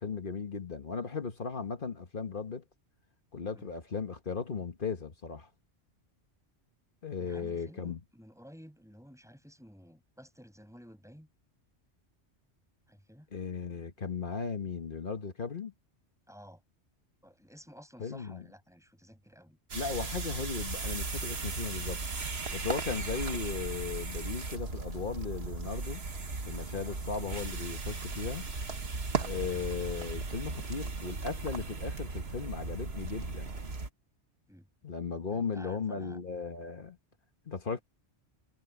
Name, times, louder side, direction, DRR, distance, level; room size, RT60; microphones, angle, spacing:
voice 1, 0.0-2.6 3.3-5.5 7.0-8.0 13.3-15.7 18.0-18.4 19.7-22.0 22.5-26.0 26.4-28.4 29.2-33.5 34.8-37.0 37.5-37.8, left 5 dB, 50° left, 1.5 m, -36 dB
voice 2, 7.2-11.3 12.9-13.3 16.3-16.6 17.2-19.6 26.8-27.0 34.5-34.7 35.3-36.2, equal, 5° right, 6.9 m, -53 dB
sound 1, 19.7-33.9, right 3 dB, 60° right, 1.9 m, -37 dB
omnidirectional pair, 1.2 m